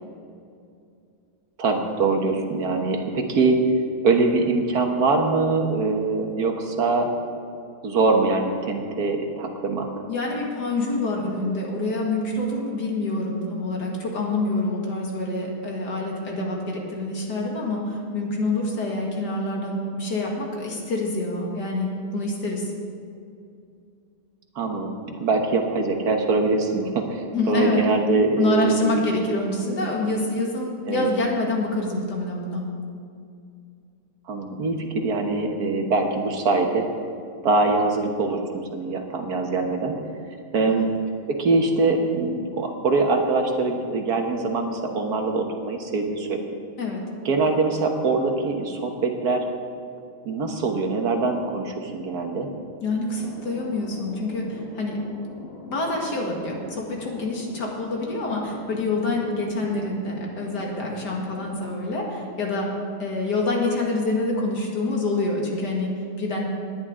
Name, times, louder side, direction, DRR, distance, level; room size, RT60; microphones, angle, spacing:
voice 1, 1.6-3.6 4.0-7.1 7.8-9.9 24.6-29.1 30.9-31.1 34.3-36.8 37.4-39.9 40.5-40.9 41.3-46.4 47.3-49.4 50.3-52.5, right 3 dB, 70° right, 3 dB, 1.7 m, -23 dB
voice 2, 10.1-22.7 27.3-27.9 28.4-32.7 40.7-40.9 46.8-47.1 52.8-55.1 55.7-66.5, left 2 dB, 85° left, -1 dB, 2.6 m, -26 dB
Thunder, 53.1-62.5, left 2 dB, 40° left, 1.7 m, -42 dB
19.0 x 10.5 x 3.7 m, 2.4 s
omnidirectional pair, 1.7 m